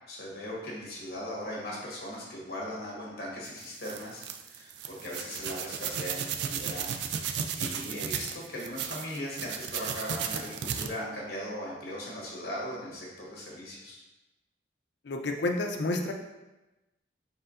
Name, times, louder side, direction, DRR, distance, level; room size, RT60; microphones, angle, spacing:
voice 1, 0.1-7.0 7.6-14.0, equal, 60° left, -4 dB, 1.3 m, -39 dB
sound 1, 3.5-10.9, right 7 dB, 70° right, 0.3 m, -34 dB
voice 2, 15.1-16.1, left 2 dB, 75° left, 3 dB, 0.5 m, -29 dB
4.4 x 4.2 x 2.5 m, 1.0 s
head